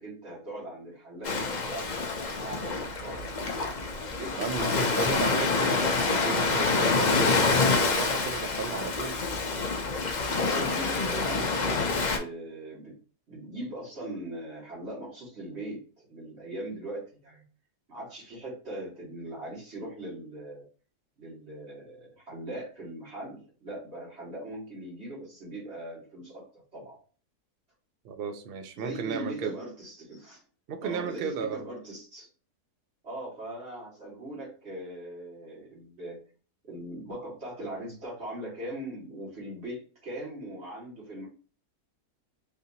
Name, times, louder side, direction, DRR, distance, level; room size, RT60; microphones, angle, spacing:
voice 1, 0.0-3.3 4.1-5.4 10.4-13.0 13.3-17.4 17.9-20.7 21.2-27.0 28.8-30.4 30.8-32.3 33.0-36.2 36.6-41.3, right 1 dB, 45° right, 1.8 m, -40 dB
Ocean, 1.2-12.2, left 3 dB, 85° left, 0.4 m, -27 dB
voice 2, 4.4-9.2 28.0-29.5 30.7-31.6, right 6 dB, 85° right, 0.5 m, -35 dB
3.5 x 2.8 x 2.6 m
omnidirectional pair, 1.6 m